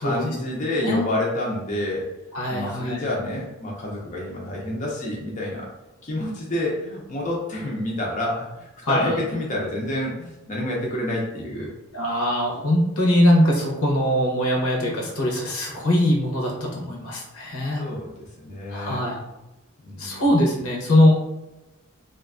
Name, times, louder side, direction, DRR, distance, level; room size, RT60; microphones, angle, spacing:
voice 1, 0.0-2.1 2.5-5.7 6.0-11.7 17.8-19.0 19.8-20.2, left 1 dB, 35° left, -3 dB, 0.4 m, -28 dB
voice 2, 2.3-3.0 8.8-9.1 11.9-17.8 18.7-19.2 20.0-21.2, left 1 dB, 80° left, -1 dB, 0.8 m, -21 dB
2.5 x 2.3 x 2.3 m, 0.99 s
head